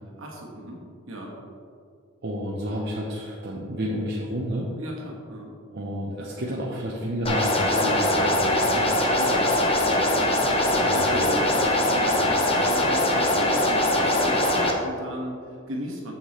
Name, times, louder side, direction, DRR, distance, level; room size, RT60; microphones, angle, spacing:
voice 1, 0.2-1.4 4.8-5.5 9.0-9.5 10.4-16.1, equal, 75° right, -1 dB, 1.4 m, -37 dB
voice 2, 2.2-4.7 5.7-8.8 10.9-11.1, equal, 60° right, -4 dB, 0.8 m, -31 dB
sound 1, 7.3-14.7, left 1 dB, 30° left, 0.7 m, -22 dB
7.3 x 6.9 x 3.2 m, 2.3 s
head